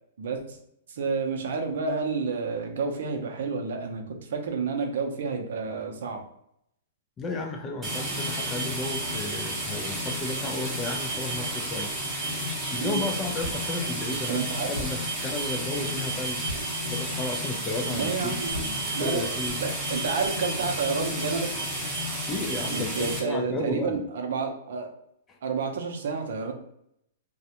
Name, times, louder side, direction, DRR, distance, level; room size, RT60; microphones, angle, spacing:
voice 1, 0.2-0.6 0.9-6.2 12.8-13.0 14.3-14.7 17.9-21.5 22.7-24.9 25.4-26.5, right 5 dB, 70° right, 3 dB, 0.5 m, -30 dB
voice 2, 7.2-11.9 12.7-16.5 16.9-18.4 19.0-19.6 22.3-24.0 25.3-25.4, left 2 dB, 15° left, 3 dB, 0.4 m, -33 dB
sound 1, 7.8-23.2, right 1 dB, 10° right, 0.7 m, -31 dB
sound 2, 13.4-13.6 14.7-14.9 16.4-16.6 18.4-18.7, equal, 85° left, 0.8 m, -35 dB
2.4 x 2.1 x 2.7 m, 0.75 s
hypercardioid pair, 150°, 0 cm